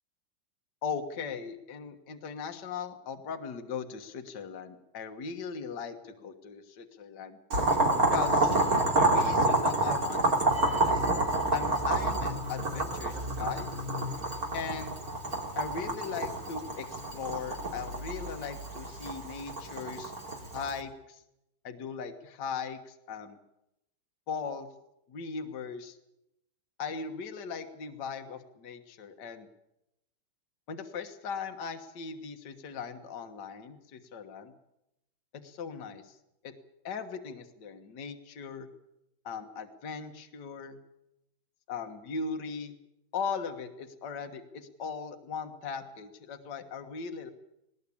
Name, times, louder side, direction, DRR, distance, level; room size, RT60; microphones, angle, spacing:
voice 1, 0.8-7.4 8.1-8.6 9.0-11.1 11.5-13.7 14.5-14.9 15.6-20.1 20.5-21.2 21.6-23.4 24.3-24.7 25.1-26.0 26.8-29.5 30.7-34.5 35.3-36.2 36.4-36.5 36.8-38.7 39.3-40.8 41.7-42.8 43.1-47.3, left 5 dB, 55° left, 6 dB, 2.0 m, -38 dB
Boiling, 7.5-20.8, right 2 dB, 45° right, 3.6 m, -28 dB
sound 1, 10.4-15.5, left 1 dB, 20° right, 4.5 m, -39 dB
19.5 x 19.0 x 8.6 m, 0.85 s
omnidirectional pair, 2.3 m